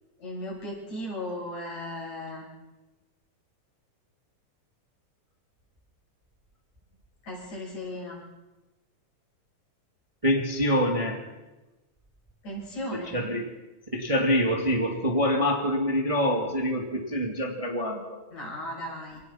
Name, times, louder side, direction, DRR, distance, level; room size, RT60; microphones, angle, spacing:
voice 1, 0.2-2.5 7.2-8.2 12.4-13.2 18.3-19.2, left 1 dB, 60° left, -3 dB, 8.5 m, -36 dB
voice 2, 10.2-11.2 13.1-13.4 13.9-18.1, equal, 10° right, 0 dB, 2.3 m, -25 dB
26.5 x 18.5 x 5.9 m, 1.1 s
omnidirectional pair, 3.5 m